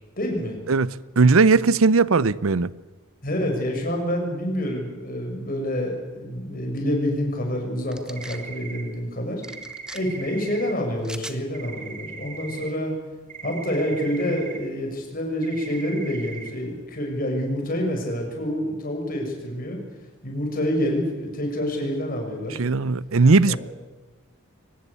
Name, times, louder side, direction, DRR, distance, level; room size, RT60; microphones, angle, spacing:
voice 1, 0.2-0.6 3.2-9.4 9.9-12.9 13.4-19.8 20.2-22.6 23.4-23.6, equal, 40° left, 6.4 m, -27 dB
voice 2, 1.2-2.7 22.6-23.6, right 4 dB, 75° right, 0.7 m, -18 dB
sound 1, 7.9-8.4 9.4-10.0 11.0-11.4, right 1 dB, 5° right, 1.1 m, -39 dB
sound 2, 8.1-8.8 9.4-10.7 11.5-12.7 13.3-14.6 15.4-16.5, right 5 dB, 35° right, 3.6 m, -39 dB
23.5 x 19.5 x 8.3 m
head